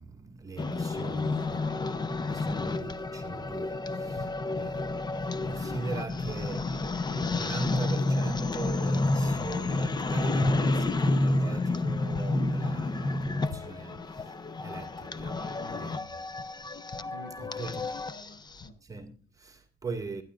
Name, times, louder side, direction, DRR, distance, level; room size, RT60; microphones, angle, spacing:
voice 1, 0.0-15.4 15.7-16.2 17.6-17.8 18.8-20.2, right 4 dB, 20° right, 2.0 m, -41 dB
sound 1, 0.6-18.7, left 2 dB, 25° left, 0.8 m, -30 dB
voice 2, 1.1-1.9 15.3-16.2 17.1-17.8 18.1-18.8 19.2-19.3, left 2 dB, 60° left, 5.9 m, -49 dB
25.0 x 11.0 x 2.5 m
cardioid pair, 110°, 17 cm